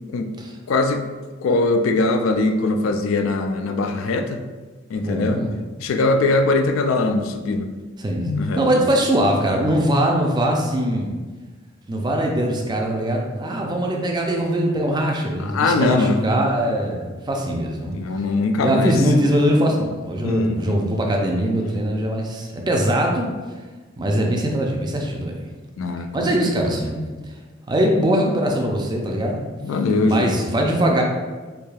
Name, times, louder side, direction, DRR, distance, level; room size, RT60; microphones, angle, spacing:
voice 1, 0.7-1.0 1.4-4.4 4.9-5.4 5.8-7.7 8.2-8.7 15.5-16.2 17.9-18.9 20.2-20.8 25.8-26.5 29.6-30.3, left 3 dB, 80° left, 6 dB, 0.3 m, -21 dB
voice 2, 5.0-5.5 8.0-11.1 11.9-18.0 18.6-23.3 24.0-25.4 26.1-27.0 27.7-29.4 30.1-31.0, right 1 dB, 20° right, 0 dB, 0.4 m, -21 dB
4.8 x 2.7 x 2.3 m, 1.3 s
head